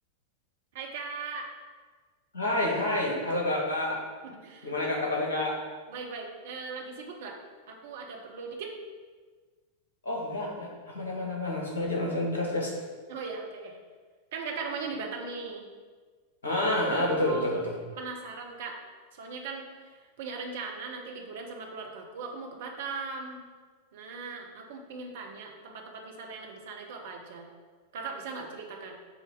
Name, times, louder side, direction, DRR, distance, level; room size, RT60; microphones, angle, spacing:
voice 1, 0.7-1.5 4.2-4.9 5.9-7.4 7.7-8.7 13.1-13.8 14.3-15.7 16.8-17.7 18.0-18.8 19.1-23.4 23.9-27.5 27.9-29.0, right 4 dB, 55° right, 2 dB, 1.1 m, -39 dB
voice 2, 2.3-4.0 4.6-5.6 10.0-12.7 16.4-17.7, left 1 dB, 70° left, -2 dB, 1.9 m, -29 dB
7.9 x 3.2 x 6.1 m, 1.5 s
figure-of-eight pair, 90°, 0 cm